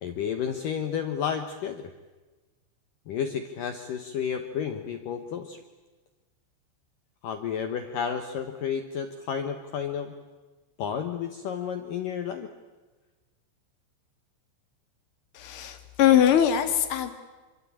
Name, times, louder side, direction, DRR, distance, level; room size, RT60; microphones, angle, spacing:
voice 1, 0.0-1.9 3.1-5.6 7.2-10.1 10.8-12.5, left 7 dB, 80° left, 7 dB, 1.9 m, -31 dB
voice 2, 15.3-17.1, left 10 dB, 50° left, 7 dB, 1.7 m, -22 dB
26.0 x 24.5 x 8.7 m, 1.3 s
omnidirectional pair, 5.8 m